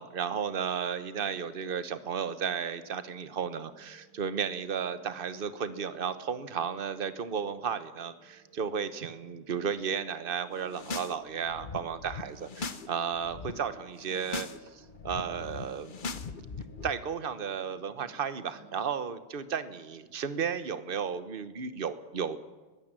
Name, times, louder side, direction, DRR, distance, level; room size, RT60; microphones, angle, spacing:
voice 1, 0.0-15.9 16.8-22.4, right 7 dB, 40° right, 12 dB, 0.8 m, -34 dB
sound 1, 2.0-18.8, right 2 dB, 65° right, 3.3 m, -58 dB
sound 2, 10.6-11.1 11.4-12.9 13.1-13.5 14.0-14.6 14.8-16.9, left 4 dB, 60° left, 0.5 m, -39 dB
22.0 x 15.0 x 8.9 m, 1.3 s
omnidirectional pair, 2.3 m